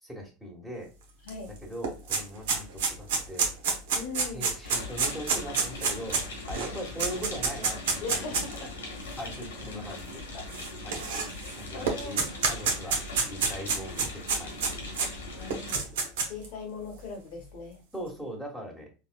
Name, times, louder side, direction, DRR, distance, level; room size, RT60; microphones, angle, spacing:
voice 1, 0.0-0.9 1.5-3.5 4.3-8.4 9.2-10.6 10.8-11.0 11.6-12.2 12.5-14.9 17.9-18.9, equal, 5° right, -2 dB, 1.5 m, -40 dB
voice 2, 1.2-1.5 3.9-4.5 8.0-8.7 10.3-10.5 11.4-12.3 15.4-15.8 16.2-17.8, left 4 dB, 65° left, 2 dB, 1.1 m, -40 dB
sound 1, 1.3-1.4 1.6-8.6 9.3-9.4 10.5-11.5 11.9-15.1 15.5-16.5, right 5 dB, 70° right, 0.8 m, -28 dB
sound 2, 4.6-15.7, left 2 dB, 90° left, 1.3 m, -40 dB
4.0 x 2.5 x 2.3 m, 0.32 s
hypercardioid pair, 90°, 0 cm